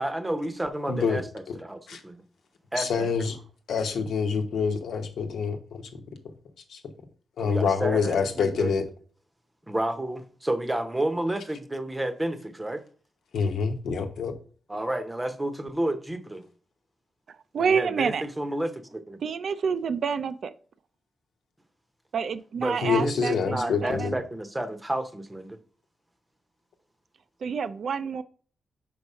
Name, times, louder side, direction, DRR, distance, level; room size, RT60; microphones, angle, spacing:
voice 1, 0.0-2.2 2.7-3.1 7.4-8.7 9.7-12.8 14.7-16.5 17.6-19.2 22.6-25.6, right 1 dB, 15° right, 0.8 m, -31 dB
voice 2, 0.9-1.2 1.5-1.6 1.9-2.0 2.8-3.4 3.7-6.0 6.7-6.8 7.4-8.8 13.3-14.3 22.8-24.1, left 5 dB, 90° left, 1.1 m, -26 dB
voice 3, 17.5-18.2 19.2-20.5 22.1-24.2 27.4-28.2, right 6 dB, 65° right, 0.5 m, -28 dB
5.2 x 4.7 x 5.5 m
wide cardioid pair, 120°, 0 cm